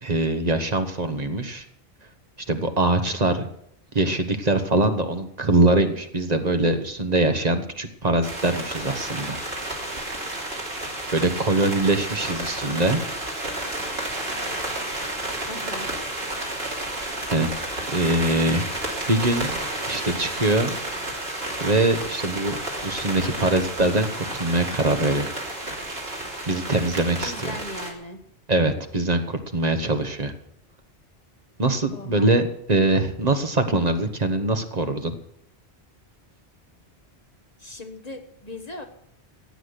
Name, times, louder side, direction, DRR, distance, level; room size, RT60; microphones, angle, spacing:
voice 1, 0.0-1.6 2.5-3.5 3.9-9.4 11.1-13.0 17.3-17.5 17.9-18.7 19.1-19.6 19.9-20.8 21.6-22.6 22.8-25.3 26.5-27.6 28.5-30.3 31.6-35.2, right 2 dB, 40° right, 7 dB, 1.3 m, -23 dB
sound 1, 8.2-27.9, right 1 dB, 65° right, 3.3 m, -31 dB
voice 2, 15.5-15.9 27.2-28.2 31.9-32.3 37.6-38.9, left 1 dB, 40° left, 5 dB, 1.4 m, -38 dB
15.5 x 8.5 x 8.1 m, 0.71 s
omnidirectional pair, 1.1 m